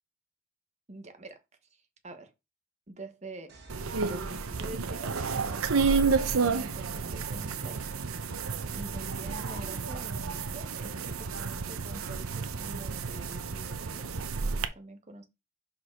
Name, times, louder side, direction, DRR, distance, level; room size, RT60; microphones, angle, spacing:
voice 1, 0.9-1.4 1.7-2.3 2.9-3.5 3.9-7.9 8.7-15.2, right 1 dB, 35° right, 1.2 m, -46 dB
sound 1, 3.5-6.4, right 2 dB, 55° right, 2.5 m, -54 dB
sound 2, 3.7-14.7, right 5 dB, 90° right, 0.8 m, -31 dB
6.0 x 5.2 x 4.5 m
head